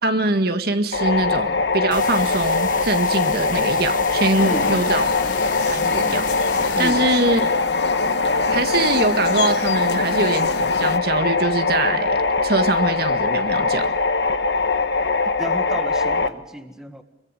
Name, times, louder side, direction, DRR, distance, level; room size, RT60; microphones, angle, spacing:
voice 1, 0.0-5.1 5.7-6.3 6.8-7.4 8.5-14.0, right 2 dB, 60° right, 7 dB, 1.8 m, -23 dB
sound 1, 0.9-16.3, left 3 dB, 85° left, 1.3 m, -21 dB
sound 2, 1.9-6.9, left 6 dB, 50° left, 1.2 m, -34 dB
sound 3, 4.3-11.0, left 4 dB, 70° left, 1.0 m, -31 dB
voice 2, 4.4-4.7 6.7-7.1 15.4-17.0, equal, 5° right, 6 dB, 1.8 m, -32 dB
26.0 x 23.0 x 6.6 m, 1.0 s
head